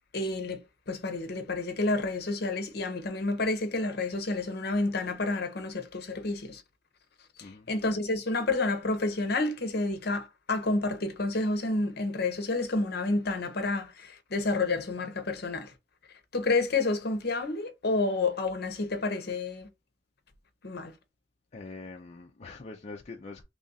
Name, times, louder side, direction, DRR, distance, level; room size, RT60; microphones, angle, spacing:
voice 1, 0.1-0.6 0.9-6.6 7.4-15.7 16.3-19.7 20.6-20.9, left 3 dB, 55° left, 0.8 m, -29 dB
voice 2, 21.5-23.4, left 3 dB, 35° left, 0.4 m, -44 dB
3.1 x 2.4 x 4.0 m
head